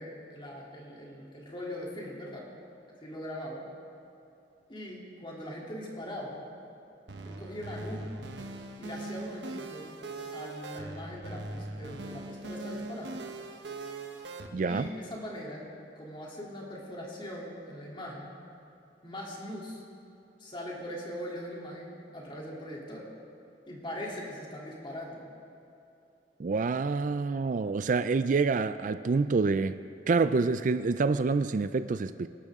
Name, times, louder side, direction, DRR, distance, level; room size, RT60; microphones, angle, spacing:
voice 1, 0.0-2.5 3.0-3.6 4.7-6.4 7.2-8.1 8.8-9.9 10.3-13.2 14.6-15.7 16.0-18.4 19.0-19.8 20.4-23.1 23.7-25.2, equal, 30° left, -3 dB, 3.0 m, -41 dB
sound 1, 7.1-14.5, right 2 dB, 85° right, 1.1 m, -41 dB
voice 2, 14.5-14.9 26.4-29.8 30.1-32.3, right 4 dB, 50° right, 12 dB, 0.4 m, -27 dB
27.0 x 12.0 x 3.7 m, 2.8 s
head